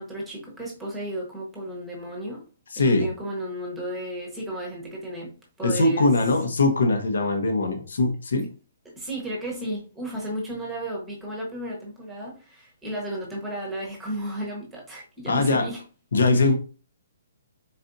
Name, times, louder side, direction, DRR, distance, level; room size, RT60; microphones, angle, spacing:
voice 1, 0.0-2.4 2.8-6.1 8.8-15.8 16.3-16.5, right 1 dB, 5° right, 1.0 m, -34 dB
voice 2, 2.7-3.1 5.6-8.5 15.3-15.6 16.1-16.5, left 2 dB, 80° left, 1.0 m, -21 dB
4.2 x 4.1 x 2.6 m
hypercardioid pair, 175°, 0 cm